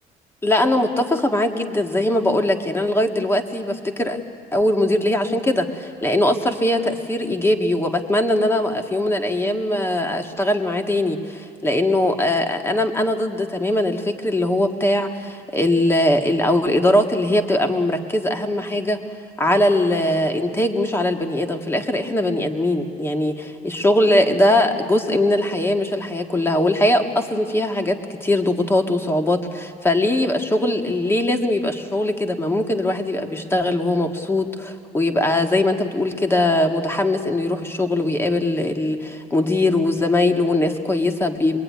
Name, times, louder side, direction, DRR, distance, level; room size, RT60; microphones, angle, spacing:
voice 1, 0.4-4.2 4.5-19.0 19.4-41.6, left 1 dB, 15° left, 5 dB, 1.9 m, -21 dB
25.5 x 22.0 x 9.6 m, 2.2 s
cardioid pair, 110°, 17 cm